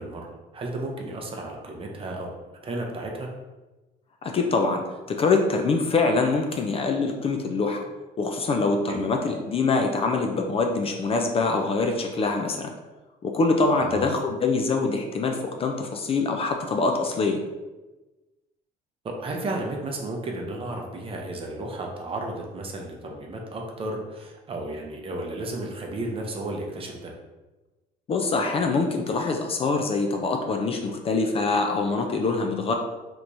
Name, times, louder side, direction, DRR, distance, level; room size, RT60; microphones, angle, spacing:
voice 1, 0.0-2.3 2.6-3.3 8.9-9.0 13.8-14.0 19.0-27.1, right 2 dB, 35° right, 1 dB, 0.6 m, -33 dB
voice 2, 4.2-7.8 8.2-12.7 13.2-17.4 28.1-32.7, left 3 dB, 35° left, 3 dB, 0.4 m, -24 dB
3.3 x 2.9 x 2.6 m, 1.1 s
cardioid pair, 110°, 17 cm